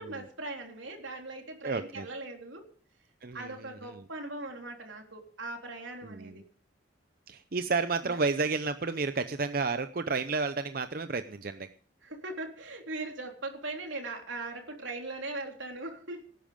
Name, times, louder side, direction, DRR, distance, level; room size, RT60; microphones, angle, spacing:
voice 1, 0.0-2.7 3.3-6.4 8.0-8.2 12.0-16.3, right 2 dB, 80° right, 3 dB, 3.6 m, -40 dB
voice 2, 1.6-2.1 3.2-4.0 6.0-6.4 7.3-11.7, right 4 dB, 50° right, 10 dB, 0.7 m, -32 dB
18.5 x 10.5 x 5.2 m, 0.43 s
head